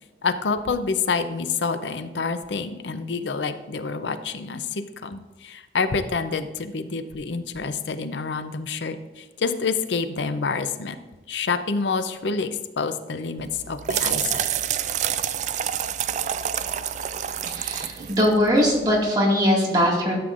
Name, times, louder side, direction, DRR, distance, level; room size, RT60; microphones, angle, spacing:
voice 1, 0.2-11.0 11.3-14.5, left 4 dB, 85° left, 10 dB, 0.6 m, -27 dB
sound 1, 13.4-19.0, right 9 dB, 40° right, 0.3 m, -28 dB
voice 2, 17.5-20.2, equal, 25° right, -3 dB, 2.0 m, -21 dB
12.5 x 7.7 x 2.5 m, 1.2 s
head